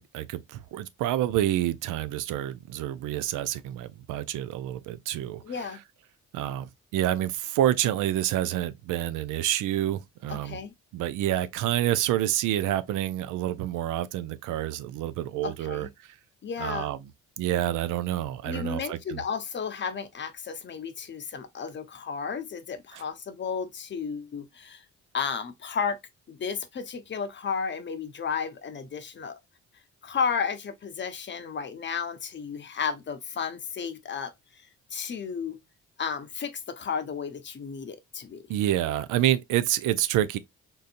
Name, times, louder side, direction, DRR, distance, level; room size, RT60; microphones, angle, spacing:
voice 1, 0.0-5.4 6.3-10.6 10.9-16.2 16.6-17.0 17.4-19.2 22.9-23.0 38.5-40.4, right 13 dB, 90° right, 0.5 m, -28 dB
voice 2, 5.4-5.8 10.3-10.7 15.4-15.9 16.4-16.9 18.4-24.8 25.1-26.0 26.3-29.4 30.0-35.6 36.0-38.4, left 6 dB, 40° left, 0.6 m, -33 dB
3.8 x 2.7 x 2.4 m
cardioid pair, 90°, 30 cm